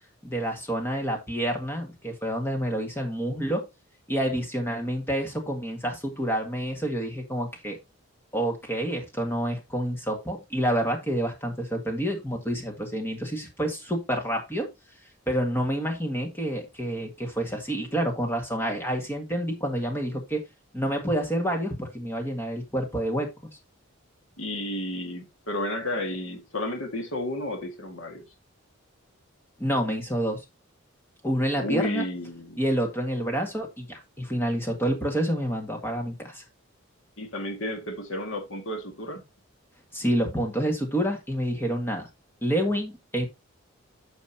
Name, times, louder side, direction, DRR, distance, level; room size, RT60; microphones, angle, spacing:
voice 1, 0.2-3.7 4.1-7.8 8.3-14.7 15.3-20.4 20.7-23.3 29.6-30.4 31.2-32.0 32.6-36.4 39.9-42.1 42.4-43.3, right 1 dB, 10° left, 1.8 m, -28 dB
voice 2, 24.4-28.2 31.6-32.6 37.2-39.2, left 1 dB, 70° left, 2.0 m, -32 dB
9.4 x 6.4 x 2.8 m
head